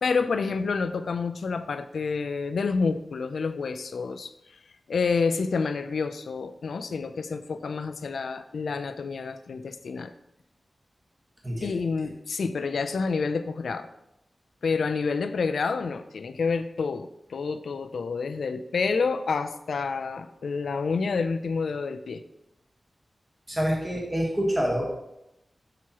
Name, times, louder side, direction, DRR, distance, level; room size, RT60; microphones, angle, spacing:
voice 1, 0.0-4.3 4.9-10.1 11.6-13.9 14.6-22.2, left 4 dB, 90° left, 10 dB, 0.4 m, -28 dB
voice 2, 11.4-11.7 23.5-24.9, equal, 20° right, -2 dB, 1.3 m, -26 dB
6.2 x 5.8 x 2.9 m, 0.86 s
wide cardioid pair, 80°, 0 cm